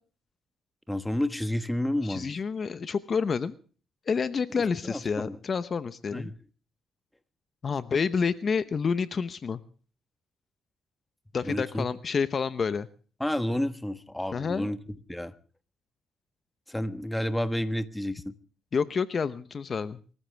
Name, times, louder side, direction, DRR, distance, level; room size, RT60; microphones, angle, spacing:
voice 1, 0.9-2.4 4.8-5.4 6.1-6.3 11.4-11.9 13.2-14.8 15.1-15.3 16.7-18.3, left 1 dB, 5° left, 1.3 m, -30 dB
voice 2, 2.1-3.5 4.1-6.3 7.6-9.6 11.3-12.9 14.3-14.7 18.7-20.0, left 5 dB, 45° left, 0.9 m, -28 dB
25.5 x 14.5 x 3.4 m
cardioid pair, 90°, 0 cm